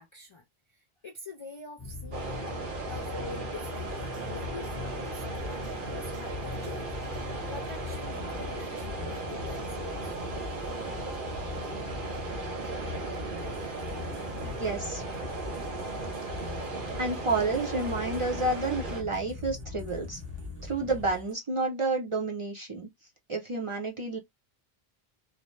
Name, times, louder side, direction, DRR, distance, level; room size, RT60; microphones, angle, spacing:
voice 1, 0.0-2.5 2.8-5.7 5.9-6.9 7.2-10.1, left 3 dB, 45° left, 0.4 m, -45 dB
sound 1, 1.8-21.1, left 4 dB, 15° left, 0.9 m, -41 dB
sound 2, 2.1-19.0, right 3 dB, 55° right, 1.0 m, -37 dB
sound 3, 3.6-21.3, left 4 dB, 85° right, 0.9 m, -48 dB
voice 2, 14.4-15.0 17.0-20.2 20.6-22.9 23.3-24.2, right 3 dB, 40° right, 0.5 m, -30 dB
2.6 x 2.0 x 3.1 m
omnidirectional pair, 1.0 m